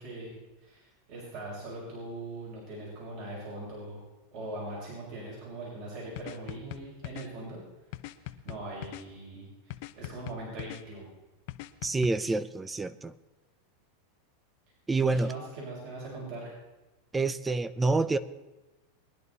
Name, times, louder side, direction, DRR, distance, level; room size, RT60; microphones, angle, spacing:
voice 1, 0.0-4.0 4.3-7.6 8.4-9.4 10.0-11.0 15.1-16.5, right 2 dB, 50° right, -4 dB, 6.0 m, -41 dB
sound 1, 6.2-7.3 7.9-9.0 9.7-10.8 11.5-12.1, left 16 dB, 60° left, 0.8 m, -40 dB
voice 2, 11.8-13.1 14.9-15.3 17.1-18.2, right 3 dB, 10° right, 16 dB, 0.6 m, -27 dB
21.5 x 10.5 x 4.1 m, 1.1 s
supercardioid pair, 135°, 0 cm